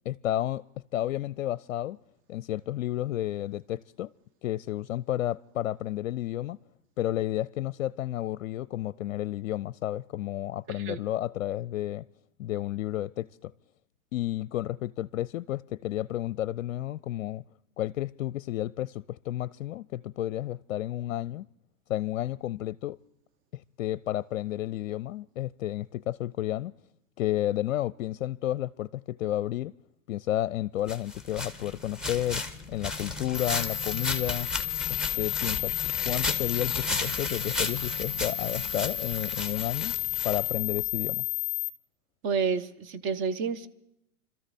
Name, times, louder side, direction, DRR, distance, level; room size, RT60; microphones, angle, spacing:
voice 1, 0.1-0.6 0.9-2.0 2.3-4.1 4.4-6.6 7.0-12.0 12.4-13.5 14.1-17.4 17.8-21.5 21.9-23.0 23.5-26.7 27.2-29.7 30.1-34.5 34.9-39.9 40.2-41.2, left 13 dB, 70° left, 0.5 m, -31 dB
voice 2, 10.7-11.0 42.2-43.7, right 5 dB, 30° right, 0.9 m, -29 dB
sound 1, 30.9-40.9, left 3 dB, ahead, 1.4 m, -35 dB
sound 2, 33.3-41.7, left 13 dB, 15° left, 3.0 m, -32 dB
26.0 x 13.5 x 4.1 m
hypercardioid pair, 115°, 39 cm